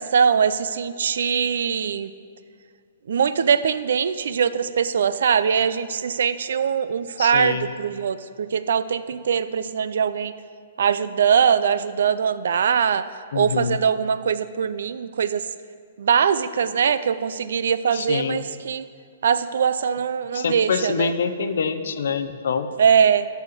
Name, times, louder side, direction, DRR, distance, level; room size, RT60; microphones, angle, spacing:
voice 1, 0.0-2.1 3.1-10.3 10.8-13.0 13.4-15.5 16.0-18.8 19.2-21.1 22.8-23.3, right 7 dB, 60° right, 14 dB, 0.4 m, -22 dB
voice 2, 7.2-7.7 13.3-13.8 17.9-18.5 20.3-22.7, left 6 dB, 55° left, 10 dB, 0.6 m, -25 dB
12.5 x 4.2 x 6.6 m, 2.2 s
hypercardioid pair, 180°, 0 cm